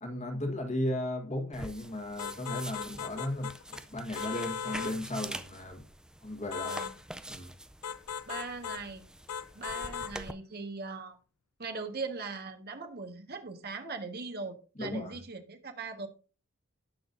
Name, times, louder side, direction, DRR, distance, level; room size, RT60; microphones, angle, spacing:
voice 1, 0.0-5.8 6.2-6.8 7.3-7.5 14.8-15.2, left 1 dB, 30° left, 1.5 m, -35 dB
sound 1, 1.5-10.3, right 1 dB, 5° right, 0.5 m, -45 dB
sound 2, 2.2-3.8 4.2-5.0 6.5-7.0 7.8-8.9 9.3-10.2, left 7 dB, 80° left, 0.5 m, -38 dB
voice 2, 6.6-6.9 8.3-9.0 9.5-11.2 11.6-16.1, right 4 dB, 45° right, 1.5 m, -40 dB
18.0 x 6.1 x 2.7 m
head